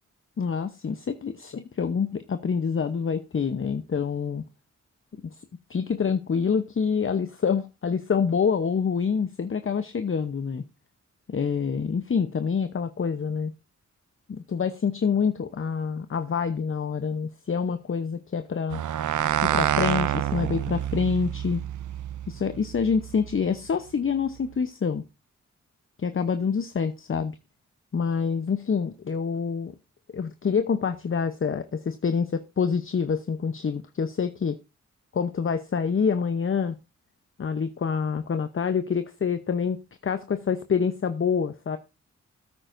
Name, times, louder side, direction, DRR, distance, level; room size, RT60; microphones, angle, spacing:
voice 1, 0.4-4.4 5.2-5.3 5.7-10.6 11.3-13.5 14.3-18.8 19.4-21.6 22.3-25.0 26.0-27.3 27.9-29.7 30.1-34.6 35.1-36.8 37.4-41.8, left 6 dB, 40° left, 0.8 m, -26 dB
sound 1, 18.7-23.4, right 11 dB, 75° right, 0.6 m, -28 dB
17.5 x 8.9 x 2.6 m
cardioid pair, 60°, 31 cm